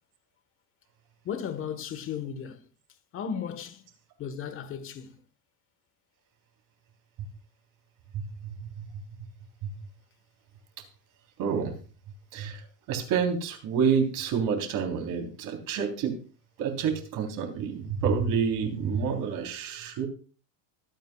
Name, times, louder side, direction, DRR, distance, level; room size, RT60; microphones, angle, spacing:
voice 1, 1.2-2.6 3.1-3.8 4.2-5.2, left 7 dB, 25° left, 1.3 m, -35 dB
voice 2, 8.1-9.0 9.6-9.7 11.4-11.7 12.3-12.6 12.9-16.2 16.6-20.1, right 6 dB, 40° right, 3.5 m, -28 dB
24.5 x 9.1 x 2.3 m
cardioid pair, 175°, 49 cm